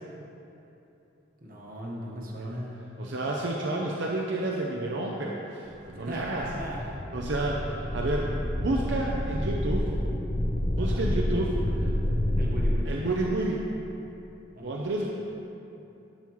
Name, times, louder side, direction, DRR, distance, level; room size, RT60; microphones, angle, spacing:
voice 1, 1.4-2.8 6.0-7.0 10.8-11.0 12.4-12.9 14.5-14.8, equal, 50° right, -3 dB, 1.3 m, -38 dB
voice 2, 3.0-6.4 7.1-9.9 10.7-11.9 12.9-13.6 14.6-15.1, right 2 dB, 65° right, -1 dB, 0.6 m, -30 dB
sound 1, 5.8-5.9 6.1-12.8, left 1 dB, 20° left, 0.5 m, -29 dB
11.0 x 7.3 x 3.1 m, 2.9 s
head